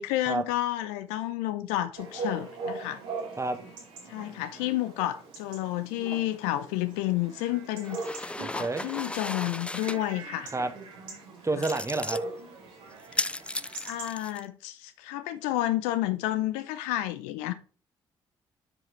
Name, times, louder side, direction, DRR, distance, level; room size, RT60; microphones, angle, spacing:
voice 1, 0.0-3.0 4.1-8.0 8.5-10.5 13.8-17.5, left 15 dB, 80° left, 0.6 m, -30 dB
Chatter / Bark / Livestock farm animals working animals, 2.0-14.1, right 3 dB, 75° right, 2.4 m, -41 dB
sound 1, 7.8-10.0 11.6-12.2 13.0-14.4, left 2 dB, 10° left, 0.3 m, -35 dB
voice 2, 8.4-8.9 10.5-10.7 11.4-12.2, right 3 dB, 25° right, 1.1 m, -29 dB
7.6 x 5.0 x 4.6 m
hypercardioid pair, 45°, 13 cm